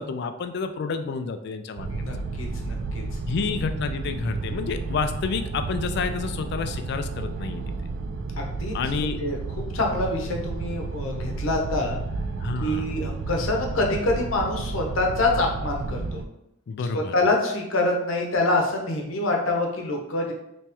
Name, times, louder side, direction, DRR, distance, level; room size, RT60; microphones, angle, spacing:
voice 1, 0.0-1.9 3.3-7.6 8.7-9.2 12.4-13.0 16.7-17.1, left 5 dB, 55° left, 8 dB, 0.3 m, -29 dB
sound 1, 1.8-16.3, right 3 dB, 85° right, 0.3 m, -32 dB
voice 2, 1.9-3.0 8.4-12.0 12.6-16.2 16.8-20.3, left 2 dB, 90° left, 1 dB, 0.8 m, -26 dB
3.4 x 3.0 x 2.9 m, 0.81 s
head